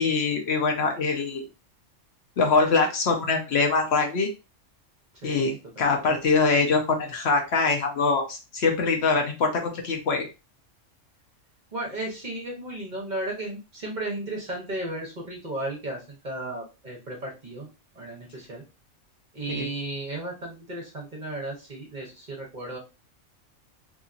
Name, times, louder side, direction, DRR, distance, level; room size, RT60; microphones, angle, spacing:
voice 1, 0.0-1.4 2.4-4.3 5.2-10.3 19.5-19.7, left 4 dB, 65° left, 3 dB, 0.9 m, -23 dB
voice 2, 5.1-5.6 11.7-17.7 17.9-18.6 19.3-22.8, right 1 dB, 45° right, -1 dB, 0.9 m, -34 dB
2.8 x 2.7 x 2.4 m, 0.28 s
omnidirectional pair, 1.3 m